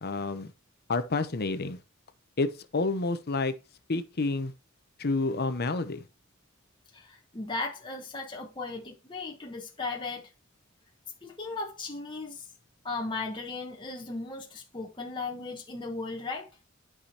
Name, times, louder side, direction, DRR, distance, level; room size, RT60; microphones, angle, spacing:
voice 1, 0.0-0.5 0.9-1.8 2.4-3.5 3.9-4.5 5.0-6.0, left 3 dB, 50° left, 0.8 m, -29 dB
voice 2, 6.9-10.2 11.2-12.5 12.8-16.5, left 3 dB, 20° left, 1.1 m, -36 dB
11.5 x 5.0 x 2.9 m
head